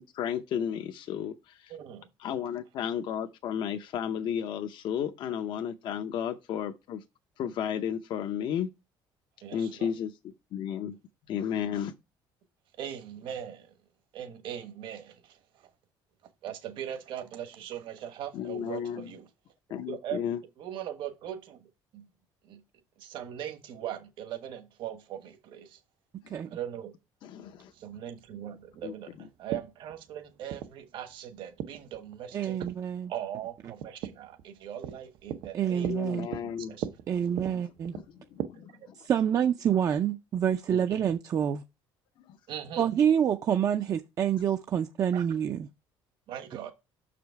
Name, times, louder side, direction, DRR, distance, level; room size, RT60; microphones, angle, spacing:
voice 1, 0.0-1.7 2.2-7.0 7.4-8.7 9.5-10.1 10.5-11.0 11.3-11.9 18.3-19.1 19.7-20.4 26.2-26.3 27.2-27.7 28.8-28.9 35.8-36.7 37.9-38.1 38.3-39.0 42.2-42.4, left 9 dB, 60° left, 0.6 m, -33 dB
voice 2, 1.7-2.1 9.4-9.9 12.8-13.7 14.1-15.7 16.4-19.3 19.9-20.2 20.6-22.0 22.4-22.6 23.0-25.8 26.5-26.9 27.7-32.6 33.1-36.9 38.5-38.6 40.7-41.1 42.5-42.9 45.1-45.3 46.3-46.7, right 10 dB, 65° right, 1.3 m, -40 dB
sound 1, 27.4-38.5, right 10 dB, 85° right, 0.7 m, -41 dB
voice 3, 32.3-33.1 35.5-36.3 37.1-37.9 39.0-41.6 42.8-45.7, right 9 dB, 40° right, 0.4 m, -27 dB
6.3 x 5.0 x 4.6 m
cardioid pair, 145°, 9 cm